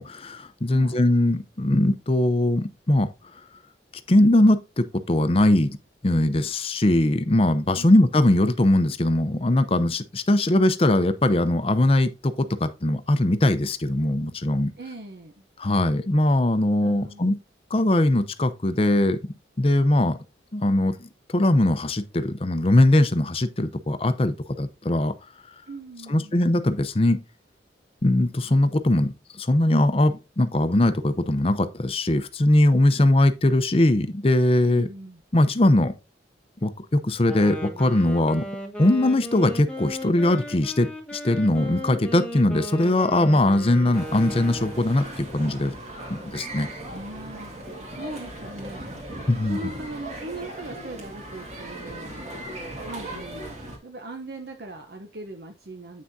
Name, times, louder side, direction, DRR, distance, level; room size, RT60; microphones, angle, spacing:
voice 1, 0.0-3.1 4.1-5.7 6.0-14.7 15.6-17.4 17.7-19.2 19.6-20.2 20.5-21.1 21.3-25.1 26.1-27.2 28.0-34.9 35.3-35.9 36.6-38.5 38.8-45.7 46.1-46.7 49.3-49.6, left 1 dB, 30° left, 0.6 m, -21 dB
voice 2, 0.7-1.0 7.7-8.0 14.8-15.4 16.8-17.4 25.7-26.4 34.7-35.2 46.9-52.3 52.9-56.0, right 2 dB, 65° right, 0.8 m, -40 dB
Wind instrument woodwind instrument, 37.2-45.1, equal, 5° left, 1.2 m, -36 dB
sound 1, 43.9-53.8, right 1 dB, 40° right, 1.9 m, -38 dB
8.4 x 6.0 x 2.6 m
head